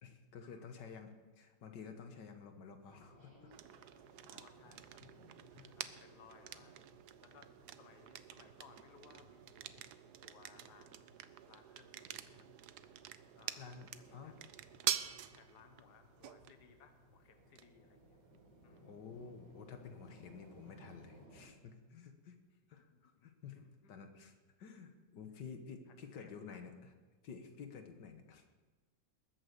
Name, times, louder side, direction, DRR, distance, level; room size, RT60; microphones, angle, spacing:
voice 1, 0.0-3.5 5.5-5.8 13.6-14.3 18.8-22.4 22.7-26.9 27.2-28.6, left 6 dB, 85° left, 6 dB, 1.9 m, -52 dB
sound 1, 2.9-21.5, equal, 85° right, 4.9 m, -63 dB
sound 2, 3.5-21.2, right 11 dB, 70° right, 1.2 m, -47 dB
voice 2, 4.3-5.0 5.8-9.9 10.2-11.1 11.5-12.7 13.3-14.5 14.8-15.0 15.3-18.2 18.6-18.9 22.5-22.6 22.9-23.3 23.5-24.0 25.9-26.6, left 6 dB, 70° left, 7 dB, 1.7 m, -64 dB
20.5 x 8.8 x 6.8 m, 1.3 s
omnidirectional pair, 1.8 m